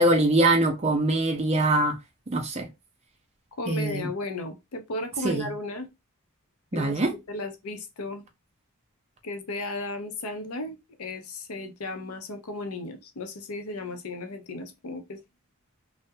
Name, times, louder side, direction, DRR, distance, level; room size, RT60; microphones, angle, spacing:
voice 1, 0.0-1.9 2.3-2.7 3.7-4.1 5.2-5.5 6.7-7.1, right 1 dB, 30° right, 0.5 m, -23 dB
voice 2, 3.6-5.9 6.7-8.3 9.2-15.2, left 2 dB, 80° left, 0.6 m, -35 dB
2.3 x 2.0 x 2.6 m
head